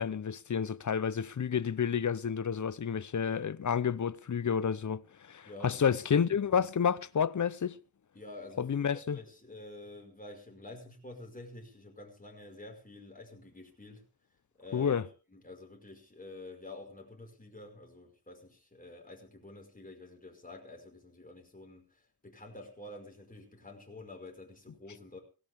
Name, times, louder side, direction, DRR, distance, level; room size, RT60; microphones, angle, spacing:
voice 1, 0.0-7.8 8.6-9.2 14.7-15.1, left 7 dB, 45° left, 0.7 m, -30 dB
voice 2, 5.4-6.0 8.1-14.1 14.6-15.0 15.3-25.2, left 2 dB, 20° left, 5.3 m, -49 dB
17.5 x 17.0 x 3.6 m
wide cardioid pair, 100°, 40 cm